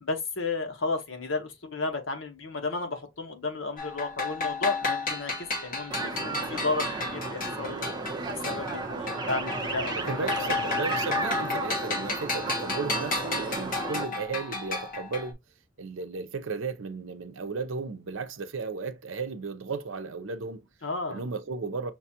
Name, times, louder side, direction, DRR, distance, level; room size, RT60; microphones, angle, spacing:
voice 1, 0.0-5.3 5.6-7.9 8.3-10.5 20.8-21.2, left 3 dB, 75° left, 1.0 m, -33 dB
sound 1, 3.8-8.8 9.1-15.3, left 3 dB, 45° left, 1.1 m, -32 dB
sound 2, 5.9-14.0, right 3 dB, 20° right, 0.8 m, -33 dB
voice 2, 10.0-15.4 15.8-20.7 21.1-21.9, right 4 dB, 75° right, 0.6 m, -35 dB
5.8 x 2.3 x 2.8 m
head